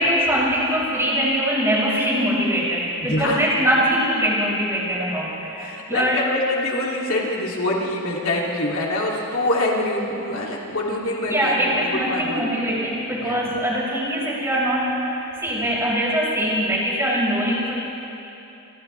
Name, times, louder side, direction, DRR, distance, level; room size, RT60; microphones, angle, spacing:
voice 1, 0.0-6.2 11.2-17.7, equal, 15° right, -5 dB, 5.5 m, -22 dB
voice 2, 3.0-3.5 5.6-12.4 13.2-13.4, left 1 dB, 70° left, -3 dB, 3.0 m, -25 dB
28.0 x 27.0 x 3.5 m, 2.9 s
head